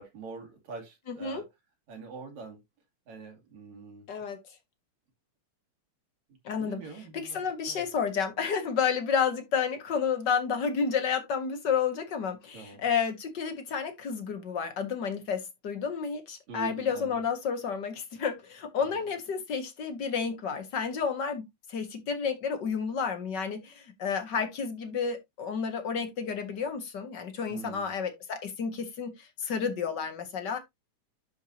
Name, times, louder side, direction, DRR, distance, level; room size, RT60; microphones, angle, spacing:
voice 1, 0.0-1.5 1.9-2.6 3.1-4.1 6.6-7.9 12.5-12.8 16.5-17.2 18.8-19.0 27.5-28.0, right 5 dB, 65° right, 3.6 m, -44 dB
voice 2, 4.1-4.4 6.5-6.8 7.1-30.6, left 6 dB, 45° left, 1.6 m, -31 dB
12.0 x 4.7 x 2.9 m
omnidirectional pair, 3.6 m